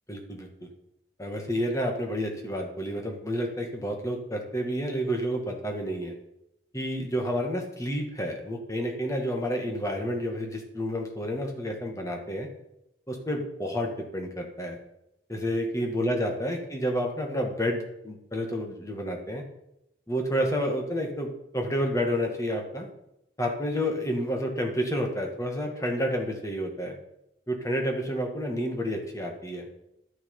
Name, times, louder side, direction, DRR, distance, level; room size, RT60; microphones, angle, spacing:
voice 1, 0.1-0.7 1.2-6.1 6.7-12.5 13.1-14.8 15.3-19.4 20.1-22.9 23.4-26.9 27.5-29.7, equal, 15° left, 2 dB, 2.0 m, -30 dB
11.5 x 9.9 x 5.6 m, 0.82 s
head